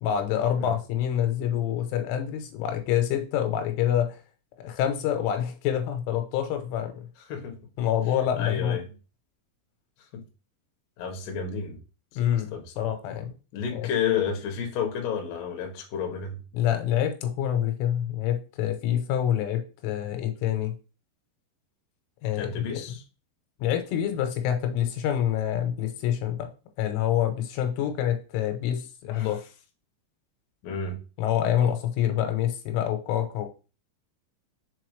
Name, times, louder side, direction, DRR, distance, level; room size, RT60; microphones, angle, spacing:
voice 1, 0.0-4.2 4.6-7.1 7.8-8.8 12.2-13.3 13.7-13.8 16.5-20.7 22.2-22.6 23.6-26.5 26.8-29.4 31.2-33.5, left 10 dB, 85° left, 3.4 m, -26 dB
voice 2, 7.3-7.6 8.4-8.9 10.1-10.2 11.0-11.8 12.1-12.9 13.5-16.4 22.4-23.0 29.1-29.3 30.6-31.0, left 7 dB, 65° left, 2.3 m, -31 dB
6.8 x 4.3 x 3.2 m
omnidirectional pair, 5.5 m